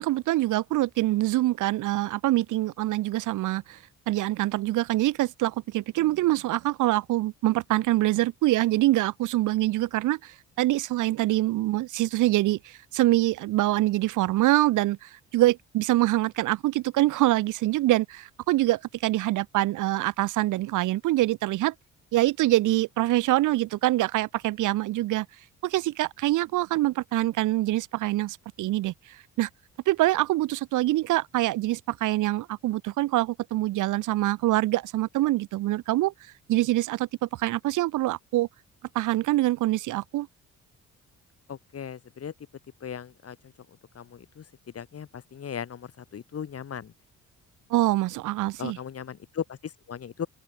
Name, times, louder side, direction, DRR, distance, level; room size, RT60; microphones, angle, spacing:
voice 1, 0.0-3.8 4.1-21.7 22.1-25.3 25.6-28.9 29.4-29.5 29.9-36.1 36.5-38.5 38.9-40.3 47.7-48.8, right 17 dB, 85° right, 1.1 m, -25 dB
voice 2, 41.5-42.3 42.8-43.4 43.9-44.4 44.7-46.9 48.6-50.3, left 8 dB, 50° left, 5.0 m, -37 dB
open air
cardioid pair, 90°, 30 cm